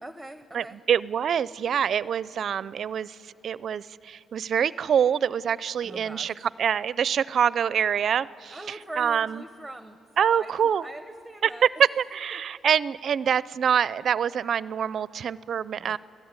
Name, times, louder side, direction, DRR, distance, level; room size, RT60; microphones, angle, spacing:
voice 1, 0.0-0.8 5.8-6.3 8.5-11.9 12.3-12.4 15.8-16.0, right 1 dB, 5° right, 9 dB, 0.9 m, -42 dB
voice 2, 0.5-3.2 3.4-9.4 10.2-10.9 11.4-16.0, right 8 dB, 60° right, 19 dB, 0.5 m, -25 dB
26.5 x 17.5 x 9.6 m, 2.8 s
cardioid pair, 90°, 0 cm